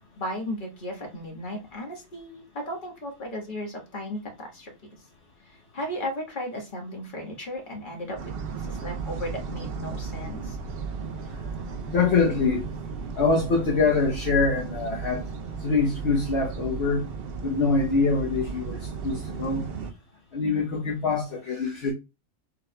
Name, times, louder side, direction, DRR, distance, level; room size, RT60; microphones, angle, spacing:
voice 1, 0.2-5.0 5.4-10.6, left 1 dB, 45° left, 1.5 m, -35 dB
sound 1, 8.2-19.9, right 5 dB, 60° right, 0.8 m, -35 dB
voice 2, 11.9-12.6 13.2-15.2 15.6-17.1 17.4-19.7 20.3-21.9, left 4 dB, 65° left, 1.1 m, -24 dB
6.9 x 3.4 x 2.2 m
omnidirectional pair, 1.2 m